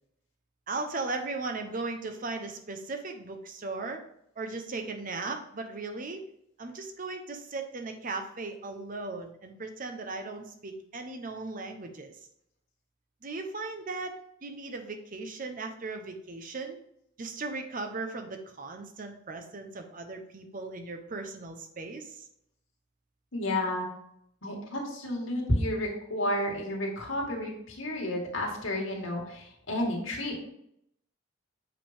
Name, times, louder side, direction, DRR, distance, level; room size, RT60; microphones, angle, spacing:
voice 1, 0.7-4.0 4.4-6.3 6.6-12.2 13.2-14.1 14.4-16.8 17.2-22.3, right 3 dB, 45° right, 5 dB, 0.8 m, -37 dB
voice 2, 23.3-23.9 24.4-30.4, left 1 dB, 80° left, 0 dB, 2.1 m, -31 dB
7.8 x 5.2 x 3.5 m, 0.74 s
head